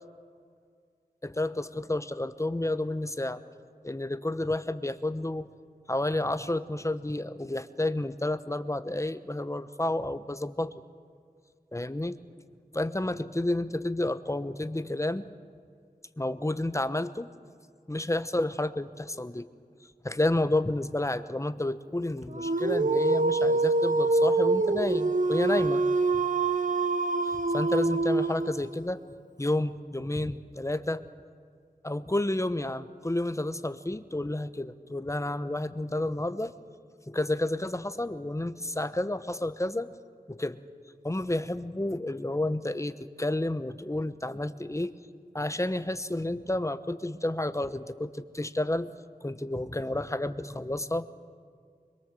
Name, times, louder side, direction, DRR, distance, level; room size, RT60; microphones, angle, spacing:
voice 1, 1.2-3.4 3.8-5.5 5.9-10.7 11.7-12.2 12.7-15.2 16.2-17.3 17.9-19.5 20.0-25.8 27.2-29.0 29.4-31.0 31.8-36.5 37.1-39.9 40.3-40.6 41.0-45.0 45.3-48.9 49.2-51.1, left 1 dB, 20° left, 12 dB, 1.0 m, -30 dB
Dog, 22.3-28.7, right 3 dB, 55° right, 1.2 m, -25 dB
24.5 x 22.5 x 7.7 m, 2.1 s
wide cardioid pair, 60°, 16 cm